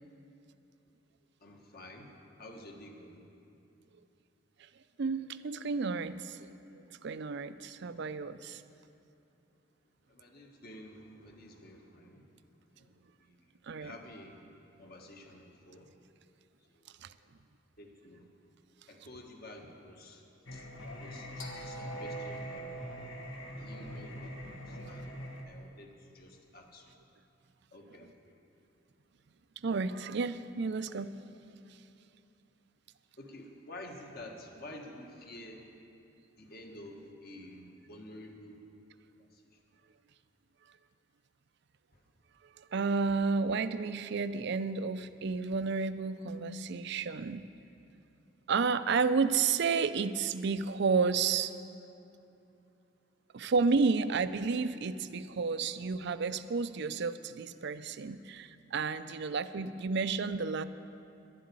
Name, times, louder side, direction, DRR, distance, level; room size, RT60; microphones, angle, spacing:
voice 1, 1.4-3.3 10.1-12.3 12.7-14.5 14.8-15.9 16.7-16.9 17.8-18.2 18.9-20.2 20.5-20.7 21.0-22.9 23.6-25.2 25.4-26.9 27.7-28.4 33.2-35.7 36.4-38.6 39.2-39.4 41.9-42.0, left 1 dB, 55° left, 2 dB, 1.4 m, -50 dB
voice 2, 5.0-6.4 7.0-8.6 13.7-13.9 17.0-17.1 29.6-31.1 42.6-47.4 48.5-51.5 53.3-60.7, right 4 dB, 65° right, 13 dB, 0.5 m, -31 dB
Singing, 20.5-25.4, equal, 80° left, 1.5 m, -42 dB
11.5 x 7.7 x 9.6 m, 2.8 s
head